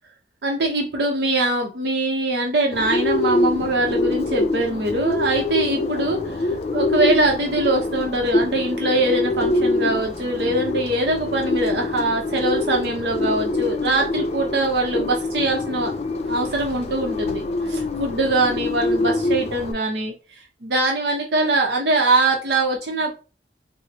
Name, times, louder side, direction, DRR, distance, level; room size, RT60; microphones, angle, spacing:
voice 1, 0.4-15.9 16.3-20.1 20.6-23.1, right 2 dB, 65° right, 2 dB, 0.6 m, -22 dB
Bird, 2.7-19.7, left 2 dB, 35° left, 0.3 m, -25 dB
4.2 x 2.0 x 2.9 m, 0.33 s
head